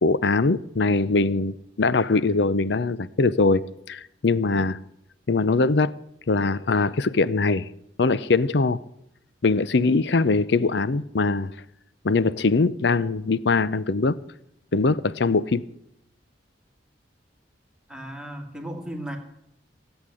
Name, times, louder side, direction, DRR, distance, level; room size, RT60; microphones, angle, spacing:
voice 1, 0.0-4.8 5.3-5.9 6.3-7.7 8.0-8.8 9.4-11.5 12.0-14.2 14.7-15.6, left 3 dB, 65° left, 0.6 m, -22 dB
voice 2, 17.9-19.2, right 1 dB, 5° right, 2.3 m, -35 dB
17.5 x 8.1 x 9.9 m
head